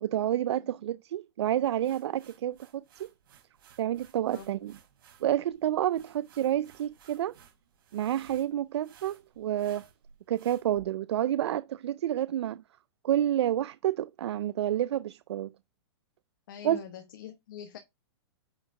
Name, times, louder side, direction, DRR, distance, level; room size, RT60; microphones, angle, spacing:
voice 1, 0.0-2.6 3.0-3.1 3.8-4.7 5.2-7.3 7.9-9.9 10.3-12.6 13.0-15.5 16.6-16.8, right 11 dB, 70° right, 0.4 m, -29 dB
sound 1, 1.6-10.8, right 7 dB, 55° right, 3.9 m, -59 dB
voice 2, 16.5-17.8, left 9 dB, 45° left, 1.1 m, -44 dB
9.5 x 4.6 x 3.7 m
hypercardioid pair, 175°, 14 cm